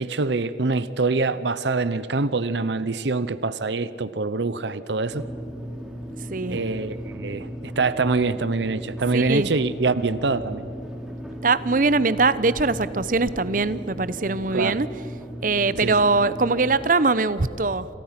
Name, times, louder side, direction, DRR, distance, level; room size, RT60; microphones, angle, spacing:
voice 1, 0.0-5.2 6.5-7.5 7.8-10.7 14.5-14.8 15.8-16.0, right 3 dB, 75° right, 15 dB, 0.8 m, -25 dB
sound 1, 5.1-16.9, equal, 5° right, 3.0 m, -36 dB
voice 2, 6.3-6.6 9.1-9.5 11.4-15.0 15.4-17.9, right 3 dB, 45° right, 16 dB, 0.8 m, -22 dB
29.0 x 28.0 x 5.9 m, 2.8 s
head